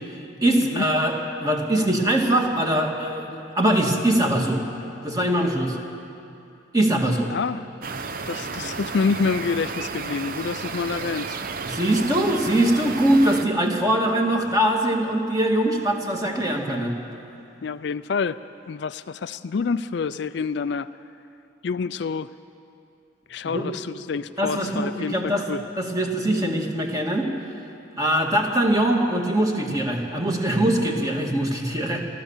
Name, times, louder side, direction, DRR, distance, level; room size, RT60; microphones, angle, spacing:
voice 1, 0.4-4.6 5.0-5.8 6.7-7.3 11.7-16.9 23.4-23.6 24.4-25.4 25.8-27.3 28.0-32.0, right 1 dB, 20° right, 1 dB, 2.1 m, -22 dB
voice 2, 7.3-7.7 8.3-11.4 17.6-18.4 18.7-20.9 21.6-22.3 23.3-25.6, left 5 dB, 60° left, 13 dB, 0.4 m, -27 dB
sound 1, 7.8-13.5, right 4 dB, 45° right, 0.7 m, -32 dB
28.5 x 13.0 x 7.3 m, 2.7 s
head